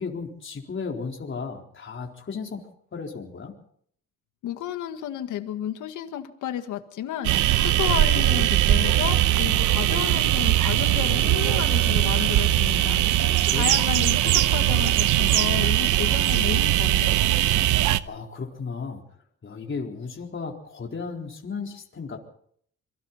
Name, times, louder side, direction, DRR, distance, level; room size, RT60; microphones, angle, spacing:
voice 1, 0.0-3.5 13.2-13.8 18.0-19.0 19.4-22.2, left 5 dB, 40° left, 1 dB, 4.2 m, -35 dB
voice 2, 4.4-13.0 13.5-17.2, left 11 dB, 85° left, 7 dB, 1.8 m, -32 dB
sound 1, 7.2-18.0, right 14 dB, 85° right, 0.9 m, -21 dB
27.0 x 23.0 x 4.3 m, 0.63 s
cardioid pair, 90°, 30 cm